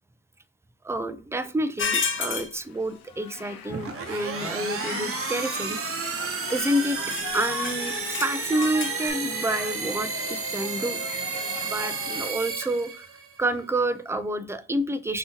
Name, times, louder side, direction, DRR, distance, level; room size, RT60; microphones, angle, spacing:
voice 1, 0.8-6.2 6.5-7.0 7.3-11.0 11.6-13.1 13.4-15.2, right 1 dB, 10° right, 11 dB, 0.5 m, -29 dB
sound 1, 1.8-2.5 5.2-5.5 6.0-6.1 6.4-6.6 7.1-9.1, left 5 dB, 35° left, 0.8 m, -30 dB
sound 2, 2.7-12.3, left 6 dB, 80° left, 0.8 m, -39 dB
sound 3, 3.7-13.4, right 5 dB, 40° right, 0.9 m, -32 dB
5.4 x 2.9 x 2.9 m, 0.36 s
supercardioid pair, 65°, 34 cm